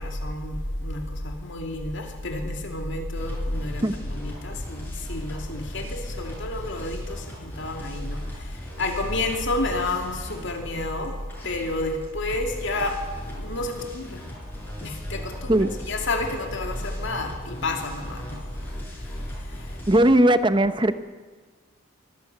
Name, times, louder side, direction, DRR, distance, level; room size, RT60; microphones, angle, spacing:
voice 1, 0.0-11.2 11.4-13.0 13.3-14.2 14.8-18.4, left 2 dB, 60° left, 3 dB, 2.5 m, -30 dB
sound 1, 3.2-20.1, equal, 10° left, 6.8 m, -40 dB
voice 2, 19.9-20.9, right 1 dB, 25° right, 11 dB, 0.9 m, -18 dB
24.0 x 16.0 x 8.1 m, 1.4 s
head